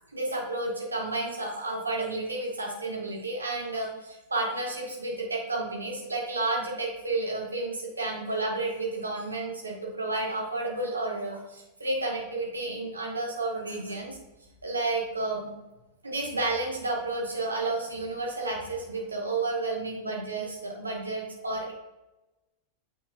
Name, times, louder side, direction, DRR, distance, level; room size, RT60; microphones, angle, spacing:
voice 1, 0.1-14.2 14.6-15.5 16.0-21.7, right 2 dB, 80° right, -1 dB, 1.4 m, -31 dB
8.6 x 4.6 x 2.6 m, 1.0 s
figure-of-eight pair, 90°, 0 cm